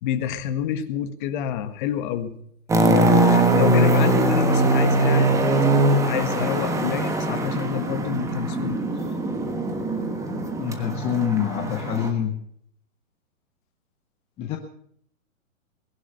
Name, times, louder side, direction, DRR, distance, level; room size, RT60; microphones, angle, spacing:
voice 1, 0.0-2.3 2.8-5.3 5.8-8.8, left 10 dB, 35° left, 9 dB, 1.7 m, -28 dB
sound 1, 2.7-12.1, right 2 dB, 5° right, 1.3 m, -21 dB
voice 2, 10.6-12.4 14.4-14.6, left 9 dB, 15° left, 5 dB, 0.8 m, -26 dB
20.0 x 11.0 x 6.7 m, 0.66 s
hypercardioid pair, 145°, 42 cm